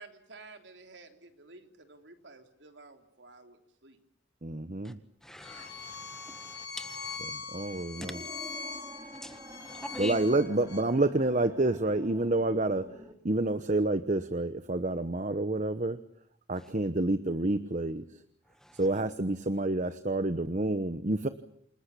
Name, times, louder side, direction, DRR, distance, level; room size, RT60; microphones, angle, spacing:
voice 1, 0.0-4.0, right 3 dB, 75° right, 3.4 m, -52 dB
voice 2, 4.4-5.0 7.3-8.2 10.0-12.9 13.2-16.0 16.5-18.0 18.7-21.3, right 2 dB, 40° right, 1.0 m, -28 dB
voice 3, 5.2-7.2 9.2-10.2 16.6-16.7 18.5-18.8, left 1 dB, 5° left, 1.7 m, -44 dB
Bowed string instrument, 5.4-10.8, left 5 dB, 20° left, 6.2 m, -42 dB
sound 1, 7.1-13.1, right 1 dB, 15° right, 3.0 m, -49 dB
28.5 x 20.5 x 8.5 m
head